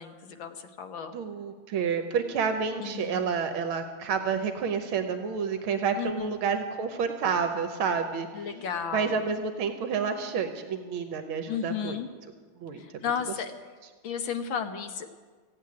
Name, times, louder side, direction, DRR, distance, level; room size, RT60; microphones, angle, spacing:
voice 1, 0.0-1.2 2.8-3.2 6.0-6.3 8.3-9.2 11.5-12.1 12.8-13.5 14.0-15.1, left 7 dB, 70° left, 7 dB, 1.7 m, -33 dB
voice 2, 1.1-8.3 8.9-12.0 12.6-13.0, right 6 dB, 85° right, 7 dB, 1.7 m, -29 dB
15.5 x 8.2 x 9.5 m, 1.5 s
omnidirectional pair, 2.3 m